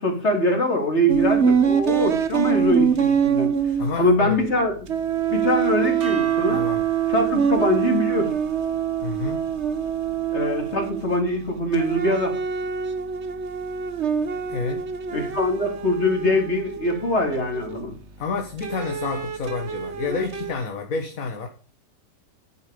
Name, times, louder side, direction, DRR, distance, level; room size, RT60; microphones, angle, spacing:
voice 1, 0.0-3.5 4.0-4.9 5.3-6.7 7.1-8.3 10.3-12.3 15.1-17.9, left 1 dB, 40° left, 3.4 m, -23 dB
sound 1, 1.1-4.6 4.8-11.3 11.7-18.0 18.6-20.5, right 8 dB, 45° right, 1.2 m, -25 dB
voice 2, 3.8-4.5 6.5-6.8 9.0-9.4 14.5-14.8 18.2-21.5, left 4 dB, 55° left, 1.8 m, -29 dB
sound 2, 6.0-12.3, right 6 dB, 80° right, 2.7 m, -40 dB
10.5 x 10.5 x 5.0 m
omnidirectional pair, 1.8 m